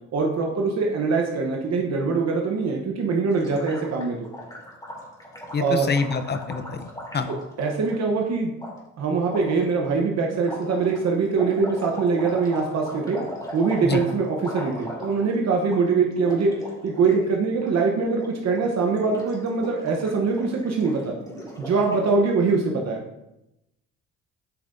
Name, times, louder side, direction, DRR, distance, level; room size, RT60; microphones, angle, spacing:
voice 1, 0.1-4.3 5.6-5.9 7.6-8.5 9.0-13.2 13.5-16.5 16.8-21.2 21.6-23.0, right 4 dB, 60° right, 0 dB, 1.0 m, -23 dB
Gurgling, 3.3-7.9 8.6-8.7 9.3-9.6 10.4-15.4 15.6-15.8 16.1-17.3 17.5-17.7 18.1-18.6 18.9-22.3, equal, 15° left, 2.5 m, -38 dB
voice 2, 5.5-6.8 7.1-7.3 13.8-14.0, left 4 dB, 35° left, 9 dB, 0.7 m, -25 dB
8.5 x 5.5 x 2.7 m, 0.89 s
cardioid pair, 90°, 30 cm